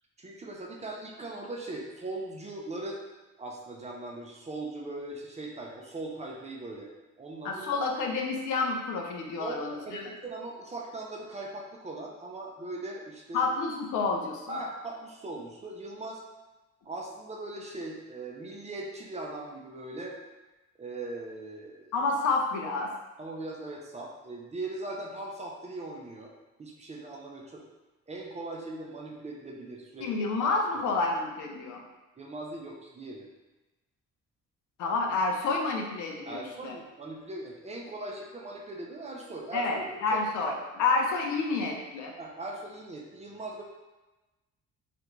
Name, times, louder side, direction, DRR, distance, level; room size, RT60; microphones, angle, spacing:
voice 1, 0.2-3.0 3.4-6.9 7.2-7.6 9.4-9.6 9.9-13.5 14.5-16.2 16.8-20.2 20.8-21.9 23.2-26.3 26.6-27.6 28.1-30.1 30.7-30.8 32.2-33.3 35.1-35.2 36.3-40.6 42.2-43.6, right 2 dB, 25° right, -1 dB, 0.4 m, -40 dB
voice 2, 7.4-10.0 13.3-14.6 21.9-22.9 30.0-31.8 34.8-36.7 39.5-40.5 40.8-42.1, left 3 dB, 75° left, 2 dB, 0.5 m, -29 dB
2.4 x 2.1 x 2.9 m, 1.1 s
cardioid pair, 90°, 30 cm